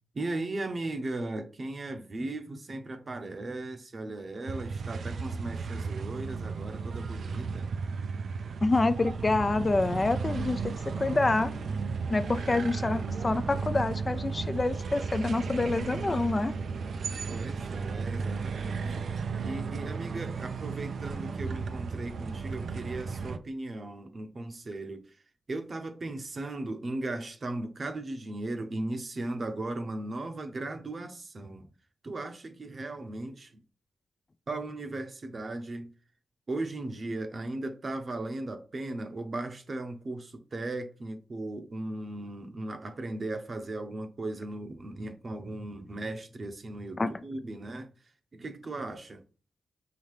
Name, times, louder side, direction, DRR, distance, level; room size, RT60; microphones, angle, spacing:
voice 1, 0.1-7.7 17.3-19.0 19.4-25.2 25.5-31.7 32.0-33.6 34.5-35.9 36.5-47.9 48.3-49.2, right 2 dB, 45° right, 0.7 m, -37 dB
sound 1, 4.5-23.4, right 5 dB, 75° right, 0.4 m, -34 dB
voice 2, 8.6-10.7 11.0-11.5 12.1-16.6 47.0-47.1, left 2 dB, 30° left, 0.4 m, -27 dB
5.7 x 2.8 x 3.2 m
cardioid pair, 70°, 0 cm